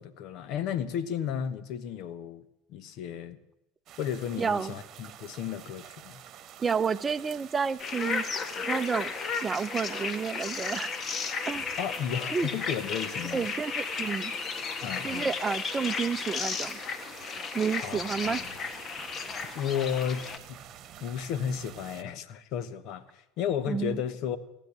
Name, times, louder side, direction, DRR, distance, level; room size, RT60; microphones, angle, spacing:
voice 1, 0.0-3.4 4.0-6.2 11.8-13.5 14.8-15.3 17.8-18.5 19.5-20.6 21.0-24.4, left 8 dB, 55° left, 14 dB, 1.1 m, -33 dB
sound 1, 3.9-22.0, right 10 dB, 45° right, 1.2 m, -49 dB
voice 2, 4.4-4.7 6.6-8.2 8.6-9.1 9.4-10.9 11.5-11.7 12.3-12.5 13.3-14.3 15.0-16.8 17.5-18.4 23.7-24.0, right 6 dB, 25° right, 14 dB, 0.6 m, -30 dB
sound 2, 7.8-20.4, left 5 dB, 35° left, 1.4 m, -34 dB
16.0 x 9.2 x 8.7 m, 0.89 s
hypercardioid pair, 80°, 0 cm